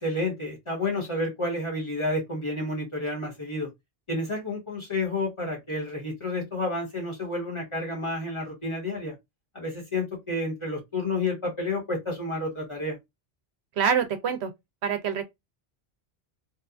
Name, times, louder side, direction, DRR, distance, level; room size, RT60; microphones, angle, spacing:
voice 1, 0.0-3.7 4.1-9.1 9.5-13.0, left 2 dB, 30° left, 1.2 m, -30 dB
voice 2, 13.8-14.5 14.8-15.2, right 7 dB, 75° right, 0.9 m, -25 dB
2.8 x 2.3 x 2.4 m
omnidirectional pair, 1.1 m